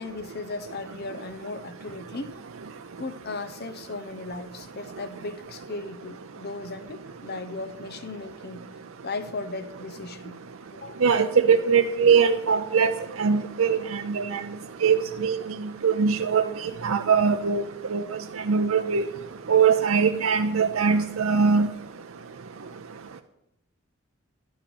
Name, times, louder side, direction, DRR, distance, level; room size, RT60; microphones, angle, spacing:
voice 1, 0.0-2.4 3.0-8.7 9.0-10.4 10.7-11.1, left 3 dB, 50° left, 0.8 m, -36 dB
voice 2, 11.0-12.9 13.2-14.4 14.8-15.4 15.8-16.4 16.8-17.6 17.9-18.2 18.5-19.0 19.5-21.7, right 6 dB, 75° right, 0.6 m, -21 dB
11.5 x 10.5 x 6.2 m
head